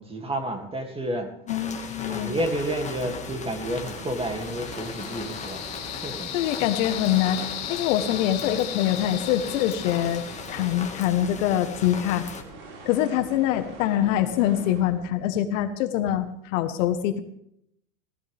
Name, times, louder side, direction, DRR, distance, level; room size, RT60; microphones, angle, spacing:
voice 1, 0.0-1.3 2.1-5.6 6.0-6.3, right 1 dB, 15° right, 4 dB, 2.6 m, -30 dB
voice 2, 1.5-2.3 6.3-7.4 7.7-12.2 12.8-17.2, left 11 dB, 60° left, 9 dB, 1.5 m, -24 dB
sound 1, 1.5-12.4, left 5 dB, 15° left, 1.9 m, -38 dB
sound 2, 2.9-15.1, right 3 dB, 55° right, 5.3 m, -44 dB
sound 3, 4.1-11.0, left 14 dB, 40° left, 1.3 m, -37 dB
18.0 x 16.0 x 3.6 m, 0.72 s
hypercardioid pair, 120°, 43 cm